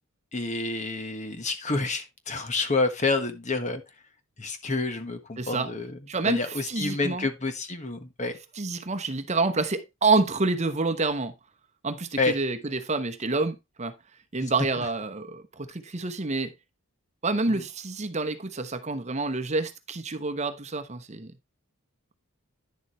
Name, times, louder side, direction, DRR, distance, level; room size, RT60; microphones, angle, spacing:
voice 1, 0.3-3.8 4.4-6.0 6.2-8.3 12.2-12.4 14.4-14.5 14.8-14.9 17.5-17.6, left 3 dB, 35° left, 1.4 m, -29 dB
voice 2, 5.4-5.7 6.1-7.3 8.6-11.3 11.8-13.9 14.3-16.5 17.2-21.3, right 3 dB, 30° right, 0.9 m, -28 dB
10.5 x 7.1 x 3.1 m
head